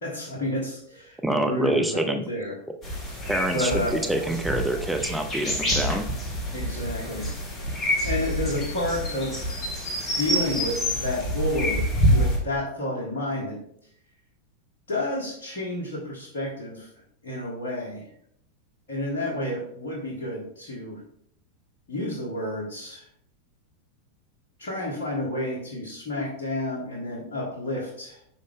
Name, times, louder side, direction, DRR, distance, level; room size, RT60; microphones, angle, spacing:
voice 1, 0.0-2.5 3.5-4.0 6.5-7.3 8.0-9.8 10.1-13.6 14.9-16.9 17.2-18.0 18.9-21.0 21.9-23.1 24.6-28.2, left 1 dB, 55° left, -5 dB, 1.6 m, -30 dB
voice 2, 1.2-2.2 3.3-6.1, right 1 dB, 5° right, 4 dB, 0.6 m, -26 dB
sound 1, 2.8-12.4, equal, 20° left, 1.7 m, -27 dB
5.6 x 5.1 x 3.5 m, 0.69 s
figure-of-eight pair, 90°, 0 cm